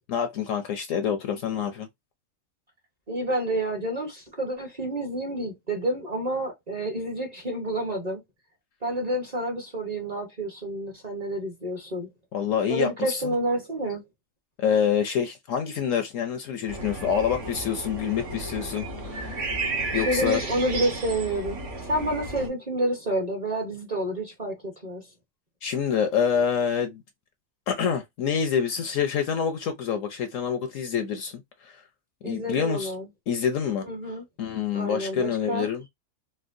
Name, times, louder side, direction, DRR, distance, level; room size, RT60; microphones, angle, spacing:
voice 1, 0.1-1.9 12.3-13.4 14.6-19.4 19.9-20.4 25.6-27.0 27.7-31.8 32.2-32.9 33.3-33.9 34.4-35.8, left 7 dB, 70° left, 0.8 m, -27 dB
voice 2, 3.1-8.2 8.8-12.1 12.7-14.0 19.9-25.1 32.2-33.1 33.8-34.2 34.7-35.7, right 1 dB, 35° right, 0.8 m, -29 dB
sound 1, 16.7-22.5, right 2 dB, 55° right, 1.4 m, -33 dB
4.3 x 2.1 x 2.5 m
omnidirectional pair, 1.7 m